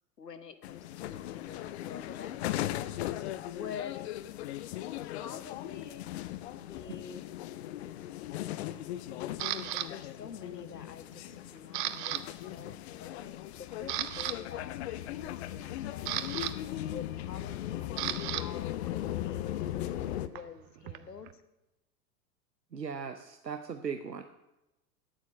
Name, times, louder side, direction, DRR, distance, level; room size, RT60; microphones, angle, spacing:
voice 1, 0.2-2.4 3.5-4.0 5.0-6.1 6.5-7.3 9.7-16.2 16.9-21.4, left 7 dB, 80° left, 11 dB, 1.1 m, -47 dB
sound 1, 0.6-20.3, left 13 dB, 45° left, 0.7 m, -38 dB
Camera, 9.4-9.9 10.5-10.8 11.1-12.2 12.5-12.7 13.2-13.3 13.7-14.4 15.5-18.4 18.7-21.3, right 14 dB, 30° right, 0.6 m, -36 dB
voice 2, 22.7-24.2, right 6 dB, 85° right, 8 dB, 0.8 m, -38 dB
9.2 x 8.2 x 8.3 m, 0.96 s
figure-of-eight pair, 90°, 48 cm